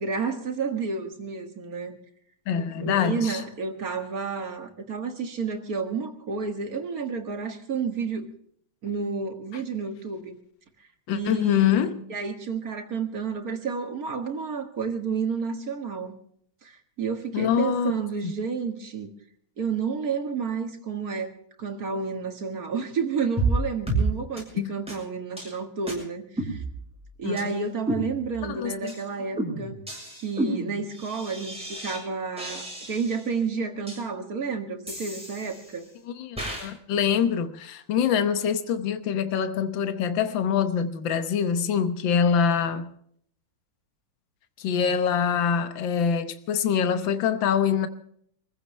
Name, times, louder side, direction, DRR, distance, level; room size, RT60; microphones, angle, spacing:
voice 1, 0.0-2.0 2.8-8.3 8.8-10.4 11.1-11.8 12.1-16.2 16.6-19.1 19.6-26.6 27.2-29.8 30.2-35.9, right 5 dB, 45° right, 2.2 m, -31 dB
voice 2, 2.5-3.4 11.1-12.0 17.3-18.0 18.2-18.3 24.6-24.7 27.2-27.6 28.4-28.9 36.0-42.9 44.6-47.9, left 7 dB, 70° left, 1.8 m, -25 dB
sound 1, 23.4-23.6 23.9-24.1 24.4-24.5 24.9-25.0 25.4-25.5 25.9-26.0 26.4-27.0 27.4-27.5 27.9-28.5 28.9-29.0 29.4-32.0 32.4-33.3 33.9-34.0 34.9-35.8 36.4-36.7, right 2 dB, 5° right, 7.1 m, -30 dB
26.0 x 15.0 x 3.3 m
omnidirectional pair, 2.2 m